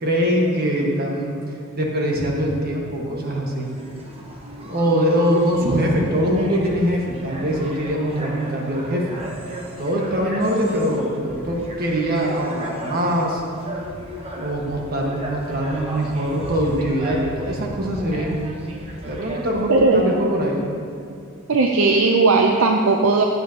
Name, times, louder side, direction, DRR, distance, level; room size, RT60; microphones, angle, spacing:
voice 1, 0.0-1.3 1.8-3.7 4.6-9.2 9.8-13.4 14.4-18.4 19.0-20.6, equal, 45° right, -1 dB, 1.5 m, -22 dB
sound 1, 3.5-19.8, right 1 dB, 25° right, 1.1 m, -36 dB
voice 2, 19.7-20.0 21.5-23.2, right 3 dB, 65° right, 2 dB, 0.6 m, -17 dB
13.5 x 8.6 x 2.9 m, 2.5 s
head